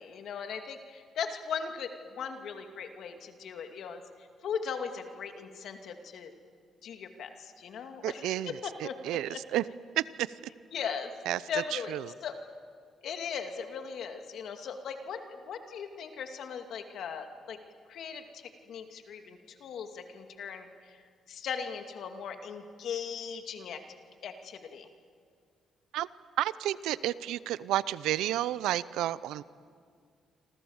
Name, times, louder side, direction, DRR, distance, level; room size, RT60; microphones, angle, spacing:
voice 1, 0.0-4.0 4.4-6.3 6.8-9.4 10.7-11.1 11.5-12.4 13.0-17.6 17.9-21.0 21.3-23.8 24.2-24.9, left 6 dB, 70° left, 5 dB, 2.4 m, -38 dB
voice 2, 8.0-8.6 8.8-9.6 10.0-10.3 11.3-11.4 11.7-12.1 25.9-26.1 26.4-29.4, right 13 dB, 90° right, 17 dB, 0.7 m, -31 dB
27.5 x 26.5 x 7.3 m, 2.2 s
cardioid pair, 90°, 0 cm